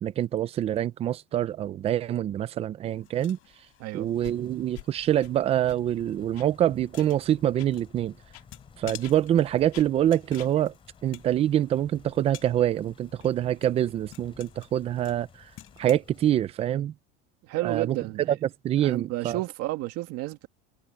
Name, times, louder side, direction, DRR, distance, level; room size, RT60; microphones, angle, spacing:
voice 1, 0.0-3.4 3.9-8.1 8.8-10.7 11.0-15.3 15.8-16.9 17.6-18.0 18.6-19.4, right 11 dB, 20° right, 0.4 m, -25 dB
sound 1, 2.9-16.0, left 14 dB, 40° left, 5.0 m, -52 dB
voice 2, 3.8-4.1 17.4-18.4 18.8-20.5, right 18 dB, 45° right, 2.1 m, -31 dB
sound 2, 4.1-16.3, left 5 dB, 15° left, 3.7 m, -54 dB
sound 3, 4.2-4.4 4.7-4.9 5.2-5.3 5.7-5.8 6.3-6.5 7.0-7.1 7.6-7.7 8.3-8.5 9.0-9.2 9.7-9.9 10.3-10.5, left 27 dB, 70° left, 2.7 m, -45 dB
cardioid pair, 165°, 33 cm